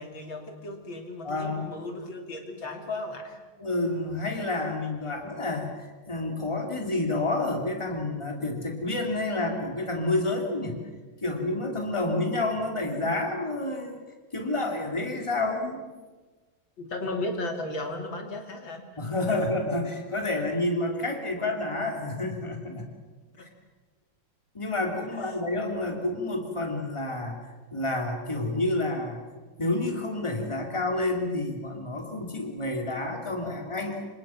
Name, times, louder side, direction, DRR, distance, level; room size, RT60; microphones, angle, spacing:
voice 1, 0.0-3.4 16.8-18.9 25.2-25.4, left 2 dB, 70° left, 4 dB, 3.4 m, -35 dB
voice 2, 1.2-1.7 3.6-10.8 11.2-14.0 14.3-15.8 19.0-22.9 23.4-23.5 24.5-27.4 27.7-29.2 29.6-34.1, left 2 dB, 15° left, 2 dB, 3.3 m, -29 dB
28.5 x 25.0 x 6.0 m, 1.3 s
omnidirectional pair, 2.2 m